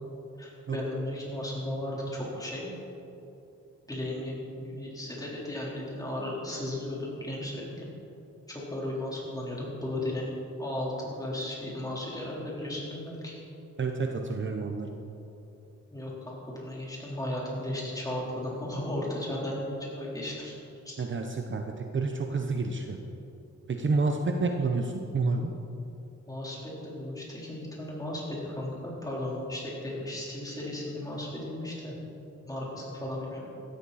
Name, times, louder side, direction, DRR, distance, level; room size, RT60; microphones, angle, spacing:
voice 1, 0.4-2.7 3.9-7.9 8.5-10.3 10.6-13.3 15.9-20.6 20.8-21.0 26.3-31.9 32.4-33.5, left 1 dB, 10° left, -5 dB, 3.9 m, -35 dB
voice 2, 13.8-14.9 21.0-23.0 23.7-25.5, right 3 dB, 40° right, 4 dB, 0.9 m, -29 dB
16.0 x 13.5 x 4.2 m, 2.8 s
wide cardioid pair, 125°, 30 cm